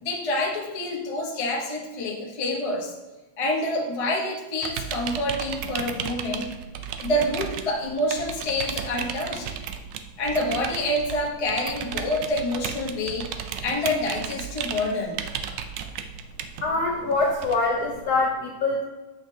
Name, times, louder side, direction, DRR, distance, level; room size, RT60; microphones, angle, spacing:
voice 1, 0.0-2.9 3.4-6.5 7.0-9.5 10.2-13.3 13.6-15.2, left 1 dB, 40° left, -2 dB, 0.5 m, -27 dB
sound 1, 4.6-18.3, right 8 dB, 75° right, 1.0 m, -35 dB
voice 2, 16.6-18.8, left 3 dB, 70° left, -1 dB, 0.9 m, -24 dB
7.4 x 5.8 x 2.7 m, 1.1 s
omnidirectional pair, 2.4 m